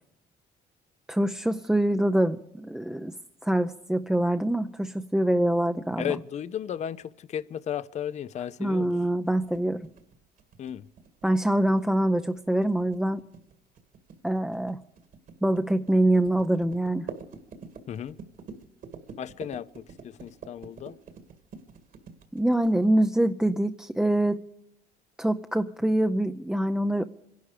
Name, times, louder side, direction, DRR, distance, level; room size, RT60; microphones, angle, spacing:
voice 1, 1.1-3.1 3.4-6.1 8.6-9.9 11.2-13.2 14.2-14.8 15.4-17.1 22.3-24.4 25.2-27.0, right 1 dB, 5° right, 0.6 m, -25 dB
voice 2, 6.0-8.9 10.6-10.8 17.9-18.2 19.2-21.0, left 9 dB, 45° left, 0.6 m, -34 dB
sound 1, 9.3-23.0, right 5 dB, 55° right, 2.1 m, -46 dB
25.5 x 11.5 x 5.0 m
cardioid pair, 110°, 17 cm